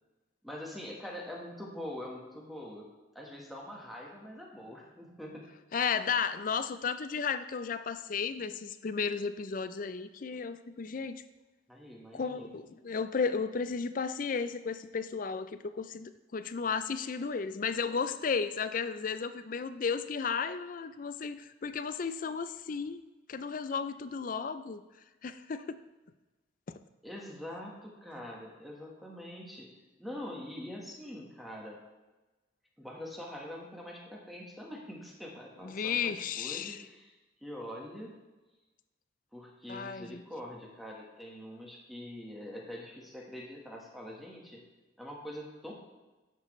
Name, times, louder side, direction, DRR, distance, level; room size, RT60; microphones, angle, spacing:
voice 1, 0.4-2.8 3.1-5.5 11.7-12.6 27.0-29.7 30.0-31.8 32.8-37.1 37.4-38.1 39.3-44.6 45.0-45.7, left 1 dB, ahead, -2 dB, 1.4 m, -44 dB
voice 2, 5.7-11.2 12.1-23.0 23.3-24.8 25.2-25.8 35.6-36.8 39.7-40.2, left 5 dB, 45° left, 12 dB, 0.4 m, -34 dB
10.5 x 7.4 x 3.2 m, 1.1 s
head